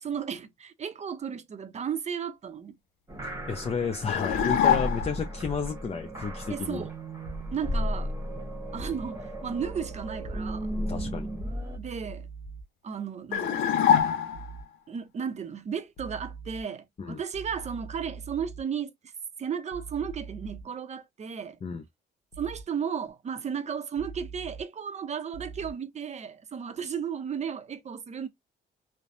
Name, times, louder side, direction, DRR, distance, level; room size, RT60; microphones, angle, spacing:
voice 1, 0.0-2.8 6.5-6.9 7.5-8.1 8.7-10.7 11.8-12.3 12.8-13.6 14.9-18.9 19.4-21.6 22.4-28.3, right 7 dB, 35° right, 0.6 m, -34 dB
sound 1, 3.1-11.8, equal, 15° right, 1.1 m, -35 dB
voice 2, 3.5-6.9 10.7-11.3 17.0-17.2 21.6-21.8, left 5 dB, 30° left, 0.6 m, -32 dB
sound 2, 4.1-5.3 13.3-14.6, left 8 dB, 90° left, 0.6 m, -24 dB
sound 3, 9.6-10.6 11.7-12.6 14.3-14.6 16.0-16.6 17.3-18.6 19.7-20.6 22.3-22.6 24.0-24.6 25.3-25.7, right 5 dB, 55° left, 0.9 m, -42 dB
3.0 x 2.1 x 2.5 m
cardioid pair, 90°, 20 cm